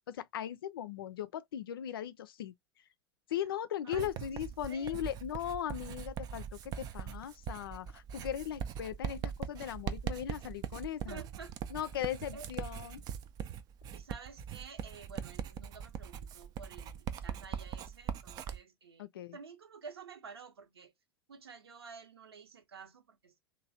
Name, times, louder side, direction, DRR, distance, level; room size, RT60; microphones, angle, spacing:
voice 1, 0.1-2.5 3.3-11.2 11.7-13.0 19.0-19.4, left 10 dB, 65° left, 0.4 m, -38 dB
voice 2, 3.8-4.3 4.6-5.0 11.1-11.7 12.3-12.5 13.9-19.1 19.3-20.9 21.3-23.4, right 5 dB, 70° right, 0.9 m, -51 dB
Writing, 3.9-18.6, right 8 dB, 30° right, 0.4 m, -41 dB
3.1 x 2.2 x 2.6 m
figure-of-eight pair, 85°, 13 cm